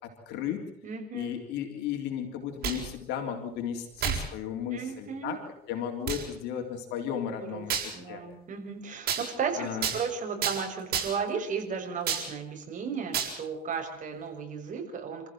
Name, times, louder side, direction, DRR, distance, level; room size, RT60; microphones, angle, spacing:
voice 1, 0.0-0.7 1.1-5.4 5.7-8.2 9.6-9.9, left 9 dB, 90° left, 3 dB, 3.8 m, -34 dB
voice 2, 0.8-1.4 4.7-5.4 7.4-7.7 7.9-15.3, right 6 dB, 50° right, 3 dB, 6.4 m, -34 dB
sound 1, 2.4-2.9 4.0-4.3 4.9-5.0 6.1-6.2 7.7-7.9 9.1-9.2 9.8-10.0 10.4-10.6 10.9-11.3 12.1-12.3 13.1-13.3, right 8 dB, 65° right, 7.1 m, -29 dB
28.0 x 15.0 x 7.8 m, 0.75 s
cardioid pair, 110°, 17 cm